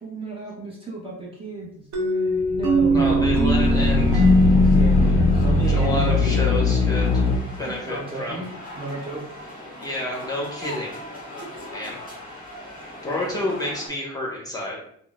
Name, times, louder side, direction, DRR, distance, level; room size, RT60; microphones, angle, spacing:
voice 1, 0.0-3.3 4.6-6.6 7.7-8.5 8.8-9.2 11.4-11.7 12.8-12.9, right 2 dB, 20° right, -5 dB, 0.8 m, -33 dB
sound 1, 1.9-6.6, equal, 70° right, 0.8 m, -21 dB
sound 2, 2.3-7.4, left 3 dB, 65° left, 0.5 m, -20 dB
voice 2, 2.9-4.3 5.7-7.2 7.6-8.4 9.8-10.9 11.7-12.0 13.0-14.8, left 1 dB, 10° left, -3 dB, 1.0 m, -29 dB
sound 3, 3.5-13.9, left 1 dB, 30° left, 1.5 m, -39 dB
3.7 x 2.0 x 2.4 m, 0.67 s
cardioid pair, 90°, 30 cm